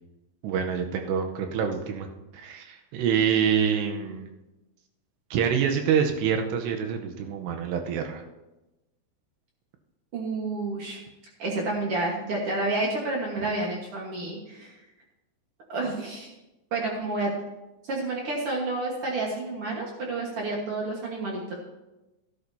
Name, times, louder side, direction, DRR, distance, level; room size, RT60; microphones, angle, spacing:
voice 1, 0.4-2.1 2.3-4.3 5.3-8.2, right 7 dB, 90° right, 4 dB, 3.0 m, -26 dB
voice 2, 10.1-11.0 11.4-14.8 15.7-16.3 16.7-17.3 17.8-21.6, right 2 dB, 75° right, -2 dB, 1.3 m, -30 dB
15.5 x 12.0 x 2.7 m, 1.0 s
omnidirectional pair, 4.9 m